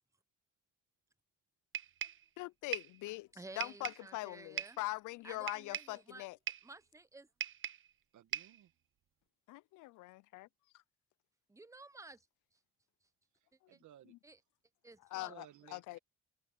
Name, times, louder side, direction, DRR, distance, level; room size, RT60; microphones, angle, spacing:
sound 1, 1.7-2.3 2.7-3.0 3.6-4.1 4.6-4.9 5.5-6.0 6.5-6.7 7.4-7.9 8.3-8.6, right 9 dB, 40° right, 0.6 m, -40 dB
voice 1, 2.4-3.3 3.6-6.4 9.5-10.5 15.1-16.0, left 20 dB, 90° left, 0.5 m, -42 dB
voice 2, 3.4-4.8 5.2-5.8 6.1-6.3 6.6-7.3 11.5-12.2 14.2-14.4 14.8-15.3, right 2 dB, 10° right, 0.9 m, -53 dB
voice 3, 8.1-8.7 13.4-14.1 15.1-16.0, right 12 dB, 75° right, 1.7 m, -59 dB
cardioid pair, 90°, 30 cm